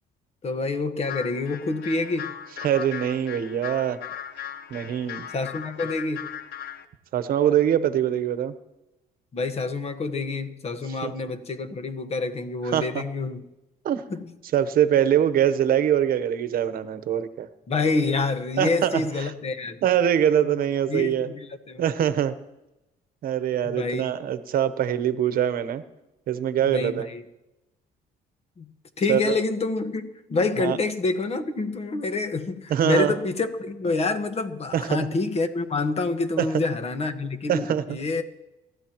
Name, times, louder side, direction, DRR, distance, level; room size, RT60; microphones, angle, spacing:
voice 1, 0.4-2.3 5.3-6.3 9.3-13.4 14.1-14.3 17.7-19.8 20.4-20.6 20.9-21.9 23.6-24.1 26.7-27.2 28.6-28.7 29.0-38.2, left 3 dB, 40° left, 8 dB, 1.5 m, -27 dB
sound 1, 1.0-6.9, left 10 dB, 80° left, 1.1 m, -38 dB
voice 2, 2.6-4.0 4.7-5.3 7.1-8.5 11.0-11.1 12.7-13.0 13.8-14.0 14.5-17.5 18.6-19.0 19.8-21.3 21.8-22.4 23.2-25.8 26.3-27.1 29.1-29.4 30.6-30.8 32.7-33.1 34.7-35.1 36.4-36.5 37.5-38.0, right 10 dB, 60° right, 12 dB, 1.0 m, -23 dB
27.5 x 14.0 x 3.1 m, 0.98 s
cardioid pair, 110°, 17 cm